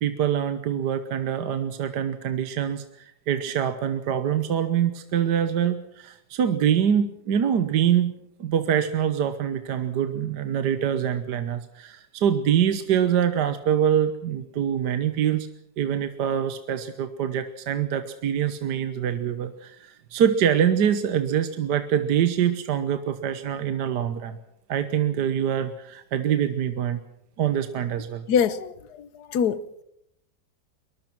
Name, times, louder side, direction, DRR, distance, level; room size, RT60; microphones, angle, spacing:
voice 1, 0.0-2.8 3.3-8.1 8.4-15.5 15.8-24.4 24.7-27.0 27.4-28.2, right 9 dB, 65° right, 1.5 m, -24 dB
voice 2, 28.3-29.8, left 7 dB, 60° left, 1.5 m, -25 dB
23.0 x 20.0 x 6.0 m
omnidirectional pair, 2.0 m